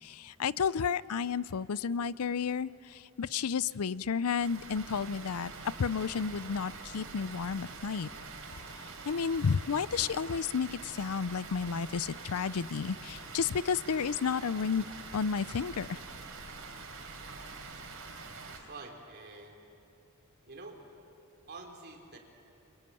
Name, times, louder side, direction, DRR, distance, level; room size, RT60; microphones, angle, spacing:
voice 1, 0.0-5.5 5.8-8.1 9.1-14.8 15.1-16.0, left 6 dB, 90° left, 19 dB, 0.5 m, -32 dB
Water, 4.4-18.6, right 4 dB, 65° right, 4.0 m, -45 dB
voice 2, 18.4-19.6 20.5-20.8 21.5-22.2, right 3 dB, 50° right, 2 dB, 3.6 m, -47 dB
27.5 x 23.5 x 9.2 m, 2.7 s
head